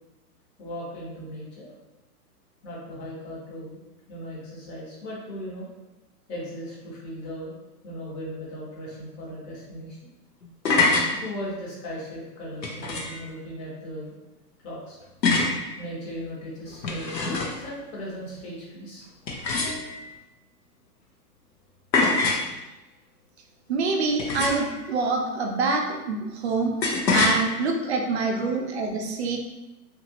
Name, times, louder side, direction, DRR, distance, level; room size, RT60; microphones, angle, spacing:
voice 1, 0.6-1.7 2.6-3.8 4.1-5.7 6.3-7.5 7.8-10.0 11.1-14.1 14.6-15.0 15.8-19.0 28.4-28.7, equal, 25° left, -6 dB, 1.0 m, -37 dB
sound 1, 10.4-11.1 12.6-13.2 15.2-15.6 16.7-17.7 19.3-20.1 21.9-22.5 24.2-24.8 26.8-27.4, left 3 dB, 90° left, 0.8 m, -24 dB
voice 2, 23.7-26.7 27.1-29.4, right 3 dB, 45° right, 2 dB, 0.5 m, -26 dB
2.8 x 2.5 x 2.8 m, 1.0 s
hypercardioid pair, 130°, 49 cm